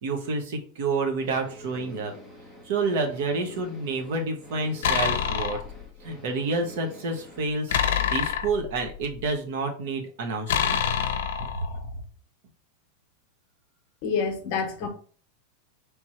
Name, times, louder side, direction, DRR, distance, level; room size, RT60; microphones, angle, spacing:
voice 1, 0.0-2.1 2.6-5.6 6.0-7.8 8.1-10.8, right 3 dB, 60° right, 1.1 m, -29 dB
sound 1, 1.2-7.5, equal, 5° right, 0.8 m, -46 dB
sound 2, 4.8-5.7 7.7-9.2 10.5-11.9, left 8 dB, 75° left, 0.6 m, -26 dB
voice 2, 14.0-14.9, left 5 dB, 45° left, 1.0 m, -27 dB
3.5 x 3.1 x 4.3 m
supercardioid pair, 170°, 0 cm